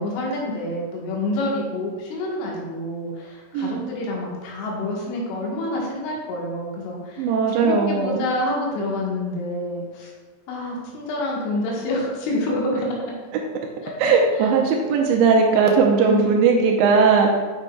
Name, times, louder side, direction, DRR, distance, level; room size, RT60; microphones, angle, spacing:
voice 1, 0.0-10.1 10.5-13.1 13.8-13.9 14.4-14.5 16.0-16.4, left 1 dB, 85° left, -2 dB, 3.7 m, -27 dB
voice 2, 3.5-3.9 7.2-8.2 14.0-17.4, right 5 dB, 80° right, 1 dB, 2.6 m, -18 dB
8.3 x 6.1 x 2.2 m, 1.4 s
omnidirectional pair, 5.4 m